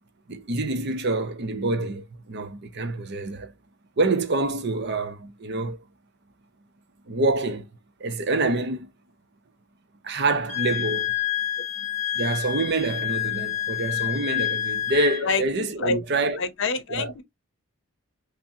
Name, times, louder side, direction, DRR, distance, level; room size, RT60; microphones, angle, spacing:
voice 1, 0.3-3.5 4.0-5.8 7.1-7.7 8.0-8.9 10.0-11.1 12.1-16.4 16.9-17.1, right 2 dB, 55° right, 0.6 m, -26 dB
Wind instrument woodwind instrument, 10.5-15.2, left 12 dB, 35° left, 0.8 m, -28 dB
voice 2, 16.4-17.2, left 4 dB, 60° left, 0.7 m, -26 dB
5.8 x 2.1 x 2.7 m
head